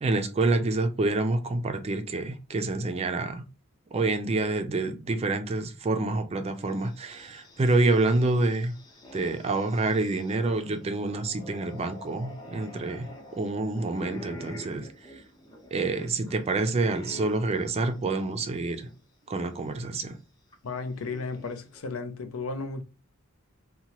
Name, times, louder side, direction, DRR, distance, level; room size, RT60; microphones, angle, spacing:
voice 1, 0.0-3.4 3.9-8.7 9.1-13.1 13.3-15.2 15.7-18.9 19.3-20.2, right 2 dB, 30° right, 0.4 m, -27 dB
sound 1, 6.7-18.9 19.3-19.4 20.5-21.8, equal, 20° left, 0.7 m, -47 dB
voice 2, 20.6-22.8, left 3 dB, 80° left, 0.5 m, -34 dB
2.8 x 2.2 x 2.9 m
head